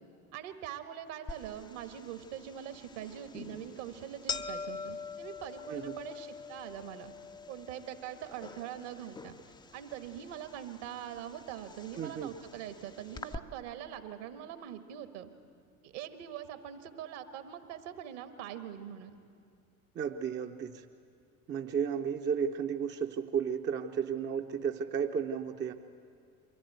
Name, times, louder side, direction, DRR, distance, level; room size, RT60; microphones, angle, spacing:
voice 1, 0.3-7.1 7.5-9.4 9.7-15.3 15.8-19.1, right 10 dB, 55° right, 9 dB, 1.5 m, -43 dB
sound 1, 1.3-13.4, left 5 dB, 10° left, 0.6 m, -45 dB
voice 2, 12.0-12.3 19.9-20.9 21.5-25.7, right 7 dB, 25° right, 5 dB, 0.7 m, -33 dB
24.0 x 15.0 x 8.2 m, 2.4 s
figure-of-eight pair, 65°, 43 cm